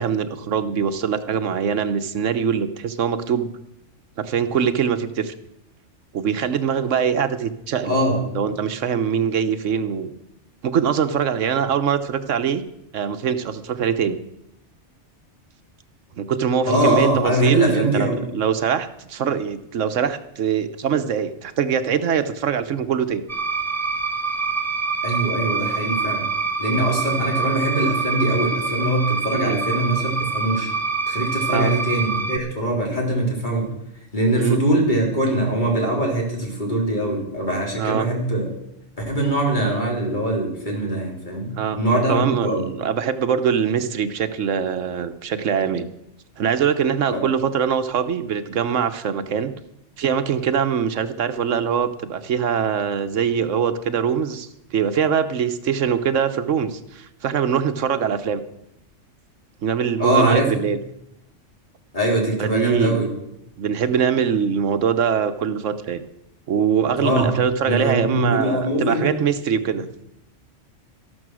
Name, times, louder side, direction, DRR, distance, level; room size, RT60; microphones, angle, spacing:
voice 1, 0.0-3.5 4.2-5.3 6.1-8.0 8.3-10.1 10.6-12.6 12.9-14.2 16.2-23.2 29.4-29.6 31.5-31.7 34.4-34.6 37.8-38.1 41.5-41.8 42.1-45.9 46.4-49.5 50.0-58.4 59.6-60.8 62.4-63.1 63.6-66.0 66.5-69.9, right 7 dB, 80° right, 10 dB, 1.2 m, -23 dB
voice 2, 7.8-8.2 16.6-18.2 25.0-26.3 26.6-30.7 31.1-33.7 34.1-38.5 39.0-42.7 47.1-47.3 60.0-60.6 61.9-63.1 67.0-67.3 67.6-69.1, right 1 dB, 40° left, -1 dB, 3.9 m, -22 dB
sound 1, 23.3-32.4, right 4 dB, 15° right, 1.0 m, -25 dB
13.0 x 12.5 x 6.2 m, 0.83 s
omnidirectional pair, 1.3 m